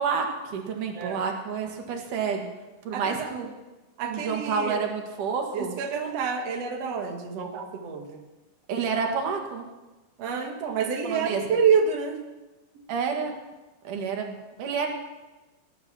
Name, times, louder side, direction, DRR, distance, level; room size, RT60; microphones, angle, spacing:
voice 1, 0.0-2.5 2.8-3.5 4.1-5.8 8.7-9.6 11.0-11.4 12.9-13.3 13.8-14.9, right 5 dB, 90° right, 2 dB, 3.4 m, -29 dB
voice 2, 2.9-3.3 4.0-4.8 5.5-8.2 10.2-12.2 12.7-12.8, right 6 dB, 60° right, 2 dB, 2.5 m, -27 dB
18.5 x 11.0 x 6.0 m, 1.1 s
omnidirectional pair, 3.5 m